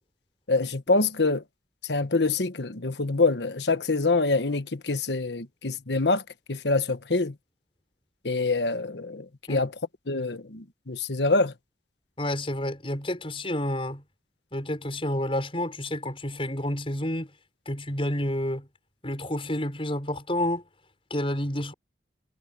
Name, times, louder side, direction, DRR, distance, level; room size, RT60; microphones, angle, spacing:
voice 1, 0.5-1.4 1.9-6.2 6.5-7.3 8.2-9.7 10.1-11.5, left 3 dB, 75° left, 1.3 m, -25 dB
voice 2, 12.2-14.0 14.5-17.3 17.6-18.7 19.0-20.6 21.1-21.7, left 1 dB, 30° left, 6.5 m, -29 dB
head